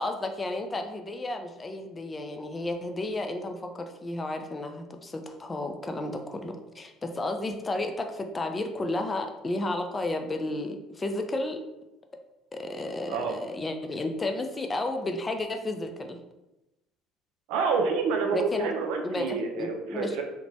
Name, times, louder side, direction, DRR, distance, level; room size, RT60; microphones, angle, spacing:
voice 1, 0.0-11.6 12.5-16.2 18.3-18.7 19.0-20.2, left 2 dB, 25° left, 5 dB, 0.3 m, -32 dB
voice 2, 17.5-20.2, right 4 dB, 75° right, 3 dB, 0.4 m, -28 dB
2.9 x 2.2 x 2.6 m, 0.97 s
hypercardioid pair, 75°, 0 cm